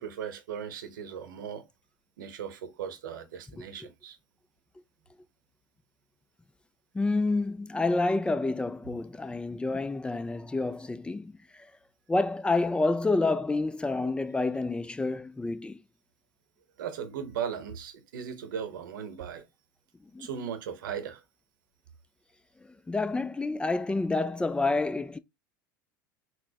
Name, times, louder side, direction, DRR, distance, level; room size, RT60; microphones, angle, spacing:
voice 1, 0.0-1.7 2.2-4.2 16.8-19.4 20.2-21.2, right 8 dB, 80° right, 0.8 m, -37 dB
voice 2, 6.9-11.7 12.1-15.8 20.1-20.3 22.9-25.2, left 3 dB, 10° left, 0.3 m, -28 dB
4.0 x 2.0 x 2.8 m
hypercardioid pair, 90°, 10 cm